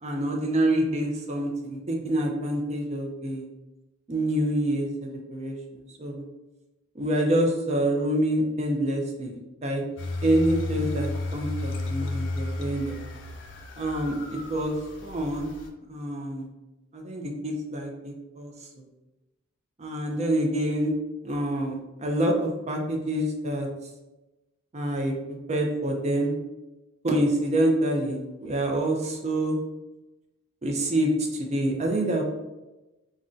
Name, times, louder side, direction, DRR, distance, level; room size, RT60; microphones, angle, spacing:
voice 1, 0.0-3.5 4.1-6.2 7.0-9.8 10.2-13.0 13.8-14.8 15.0-15.5 15.9-16.5 16.9-18.5 19.8-20.9 21.2-23.7 24.7-26.3 27.0-29.6 30.6-32.2, right 1 dB, 30° right, 1 dB, 0.4 m, -27 dB
sound 1, 10.0-15.7, left 2 dB, 60° left, 0.4 m, -33 dB
3.7 x 2.1 x 2.5 m, 1.0 s
head